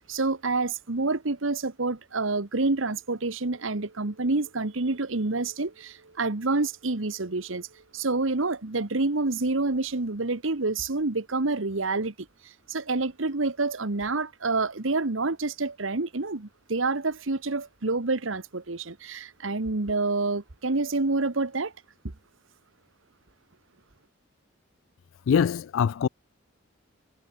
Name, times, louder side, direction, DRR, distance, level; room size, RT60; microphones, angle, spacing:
voice 1, 0.1-7.7 7.9-12.1 12.7-21.7, right 3 dB, 75° right, 1.4 m, -28 dB
voice 2, 25.3-26.1, left 7 dB, 75° left, 0.3 m, -23 dB
head